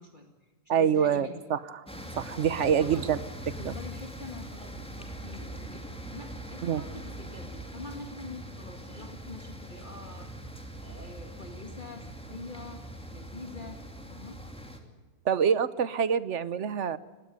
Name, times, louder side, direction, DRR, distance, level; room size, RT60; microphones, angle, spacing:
voice 1, 0.0-1.5 2.6-3.1 3.6-5.8 6.1-10.3 10.8-12.8 13.1-13.8 14.1-14.4, left 3 dB, 30° left, 3 dB, 2.1 m, -45 dB
voice 2, 0.7-1.6 2.2-3.2 3.6-3.8 6.6-6.8 15.2-17.0, right 8 dB, 55° right, 16 dB, 1.1 m, -26 dB
sound 1, 1.9-14.8, right 1 dB, 5° left, 2.5 m, -42 dB
20.5 x 16.0 x 9.5 m, 1.3 s
omnidirectional pair, 1.6 m